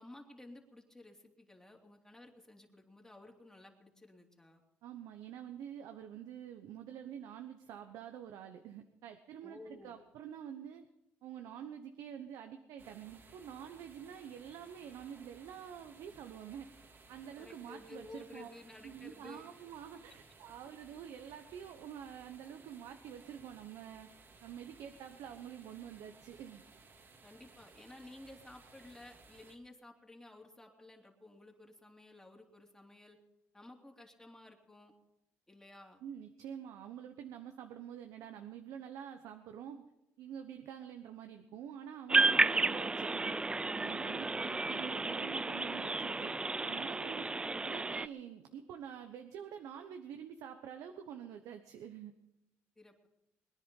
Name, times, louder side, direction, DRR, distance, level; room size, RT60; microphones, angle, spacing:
voice 1, 0.0-4.6 9.4-10.0 17.4-19.4 27.2-33.2 33.5-34.9 35.5-36.0 44.5-44.8 52.8-53.1, left 2 dB, 10° left, 1 dB, 3.0 m, -54 dB
voice 2, 4.8-10.8 11.2-16.7 17.1-18.5 18.8-24.1 24.4-26.6 36.0-39.8 40.2-43.3 43.7-46.3 46.6-47.3 47.6-52.1, right 9 dB, 80° right, 6 dB, 1.1 m, -47 dB
sound 1, 12.8-29.6, right 4 dB, 45° right, 2.1 m, -60 dB
sound 2, 42.1-48.1, right 3 dB, 15° right, 0.5 m, -32 dB
22.0 x 10.0 x 5.4 m, 0.89 s
cardioid pair, 90°, 6 cm